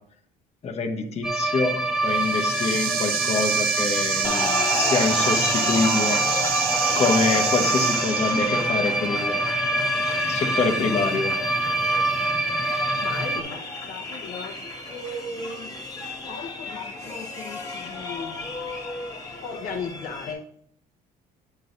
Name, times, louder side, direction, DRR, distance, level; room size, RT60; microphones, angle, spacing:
voice 1, 0.6-6.3 6.9-9.5 10.3-11.4, left 4 dB, 40° left, 2 dB, 1.2 m, -25 dB
sound 1, 1.2-13.4, right 1 dB, 5° right, 0.8 m, -26 dB
sound 2, 2.0-8.7, right 9 dB, 65° right, 0.7 m, -28 dB
sound 3, 4.2-20.3, left 2 dB, 20° left, 1.9 m, -32 dB
voice 2, 13.0-14.6 14.9-15.7 16.2-18.5 19.4-20.4, left 3 dB, 60° left, 0 dB, 1.0 m, -36 dB
8.6 x 5.6 x 4.0 m, 0.67 s
cardioid pair, 110°, 17 cm